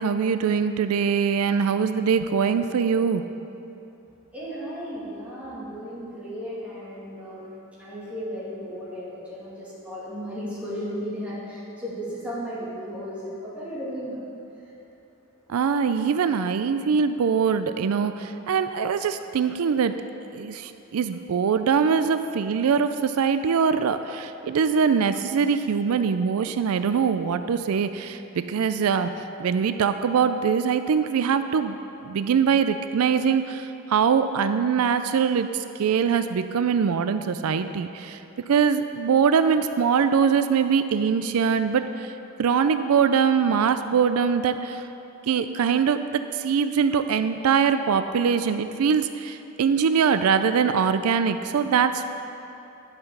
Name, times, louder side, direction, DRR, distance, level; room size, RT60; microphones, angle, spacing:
voice 1, 0.0-3.2 15.5-20.0 20.3-29.1 29.4-31.8 32.0-35.5 35.8-38.2 38.5-42.1 42.4-44.8 45.2-52.0, right 6 dB, 90° right, 10 dB, 0.4 m, -23 dB
voice 2, 4.3-14.2, equal, 5° right, -9 dB, 2.6 m, -35 dB
11.0 x 5.9 x 6.6 m, 2.9 s
head